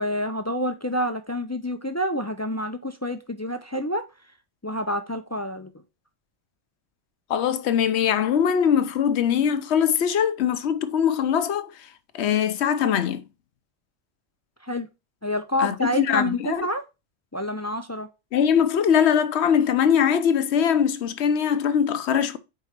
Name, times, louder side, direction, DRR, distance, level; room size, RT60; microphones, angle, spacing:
voice 1, 0.0-4.1 4.6-5.7 14.6-14.9 15.2-16.8 17.3-18.1, left 1 dB, 25° left, 0.4 m, -28 dB
voice 2, 7.3-11.7 12.1-13.2 15.6-16.7 18.3-22.4, left 8 dB, 65° left, 1.0 m, -22 dB
4.7 x 4.7 x 5.8 m
omnidirectional pair, 1.3 m